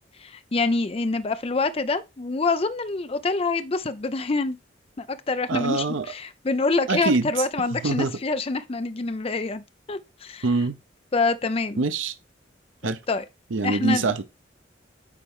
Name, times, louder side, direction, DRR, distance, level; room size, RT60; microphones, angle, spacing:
voice 1, 0.2-4.6 5.0-9.6 9.9-10.4 11.1-11.8 12.8-13.2 13.6-14.0, left 3 dB, 30° left, 0.5 m, -26 dB
voice 2, 5.5-6.1 6.9-7.3 7.7-8.1 10.4-10.8 11.8-12.1 12.8-13.0 13.5-14.2, right 3 dB, 85° right, 0.7 m, -24 dB
8.4 x 4.4 x 3.6 m
head